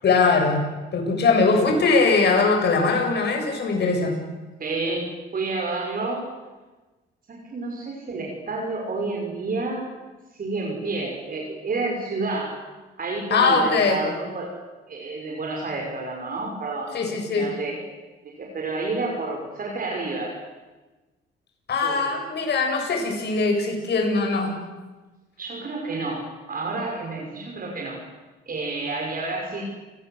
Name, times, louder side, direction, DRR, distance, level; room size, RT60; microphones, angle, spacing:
voice 1, 0.0-4.1 13.3-14.0 16.9-17.5 21.7-24.6, left 4 dB, 60° left, 2 dB, 7.8 m, -21 dB
voice 2, 4.6-6.3 7.3-9.9 10.3-12.6 13.0-14.5 14.9-16.9 17.4-17.9 18.2-20.4 21.8-22.2 25.4-28.0 28.5-29.6, right 3 dB, 45° right, 0 dB, 5.8 m, -30 dB
29.5 x 19.0 x 8.1 m, 1.2 s
cardioid pair, 90°, 20 cm